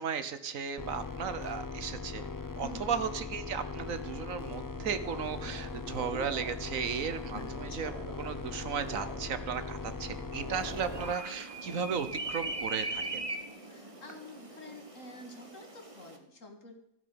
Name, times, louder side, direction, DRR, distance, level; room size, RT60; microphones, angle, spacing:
voice 1, 0.0-2.3 2.6-7.9 8.2-13.2, right 6 dB, 70° right, 12 dB, 1.4 m, -35 dB
sound 1, 0.8-11.1, left 4 dB, 25° left, 0.4 m, -40 dB
sound 2, 4.4-13.3, right 3 dB, 45° right, 1.7 m, -47 dB
voice 2, 7.3-7.8 13.7-16.8, left 1 dB, 60° left, 5 dB, 2.3 m, -48 dB
sound 3, 10.5-16.2, right 2 dB, 25° right, 1.6 m, -40 dB
14.0 x 7.9 x 7.7 m, 0.80 s
omnidirectional pair, 1.5 m